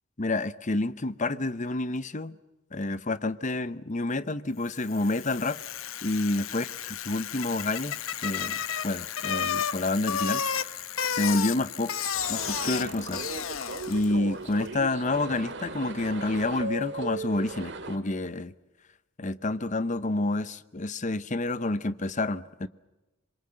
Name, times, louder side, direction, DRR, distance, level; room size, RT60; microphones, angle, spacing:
voice 1, 0.2-2.4 2.7-5.6 6.0-6.7 7.1-10.4 11.1-11.9 12.3-13.2 13.9-18.5 19.2-22.7, left 2 dB, 35° left, 0.8 m, -29 dB
Bicycle, 4.8-14.2, left 8 dB, 80° left, 1.0 m, -32 dB
sound 1, 12.1-18.0, right 3 dB, 60° right, 2.2 m, -37 dB
26.5 x 23.0 x 7.7 m
head